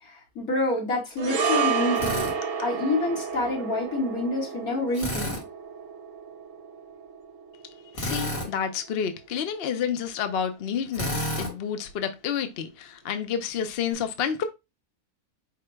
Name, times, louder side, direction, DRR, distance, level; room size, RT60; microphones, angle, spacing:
voice 1, 0.0-2.3 2.6-5.4, left 2 dB, 75° left, 2.1 m, -27 dB
sound 1, 1.2-9.6 9.9-10.1, right 6 dB, 65° right, 1.0 m, -31 dB
Drill, 2.0-2.3 4.9-5.4 7.9-8.5 10.9-11.5, left 1 dB, 25° left, 1.1 m, -30 dB
voice 2, 8.0-14.5, left 8 dB, 55° left, 0.7 m, -29 dB
4.9 x 2.1 x 4.5 m
omnidirectional pair, 1.5 m